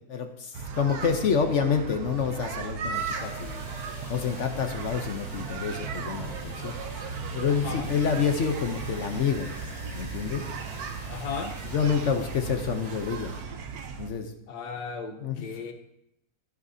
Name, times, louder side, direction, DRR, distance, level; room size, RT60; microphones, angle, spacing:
voice 1, 0.1-3.6 4.1-6.7 7.3-9.5 9.9-10.5 11.7-13.3 14.0-14.3 15.2-15.5, left 6 dB, 55° left, 6 dB, 1.0 m, -28 dB
sound 1, 0.5-14.1, right 5 dB, 70° right, 1.3 m, -36 dB
sound 2, 2.9-13.4, equal, 25° right, 3.4 m, -44 dB
voice 2, 11.1-11.6 14.5-15.7, left 5 dB, 85° left, 5 dB, 1.6 m, -35 dB
12.5 x 12.0 x 2.8 m, 0.84 s
omnidirectional pair, 1.7 m